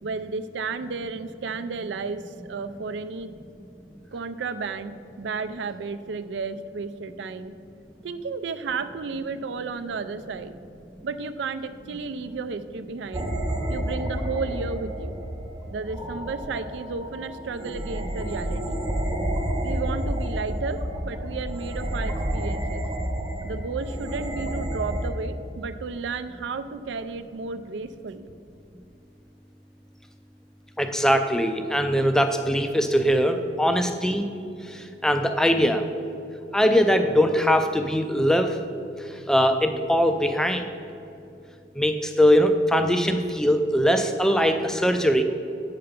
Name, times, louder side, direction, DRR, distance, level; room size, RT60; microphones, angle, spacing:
voice 1, 0.0-3.3 4.1-7.5 8.0-10.5 11.0-13.3 13.7-15.1 15.7-18.8 19.6-22.8 23.4-28.3, right 4 dB, 75° right, 12 dB, 0.4 m, -33 dB
sound 1, 13.1-25.1, right 1 dB, 20° right, 0.7 m, -30 dB
voice 2, 30.8-34.3 35.0-35.9 36.5-38.5 39.3-40.7 41.8-45.2, equal, 5° left, 7 dB, 0.3 m, -21 dB
7.7 x 5.8 x 5.1 m, 2.8 s
head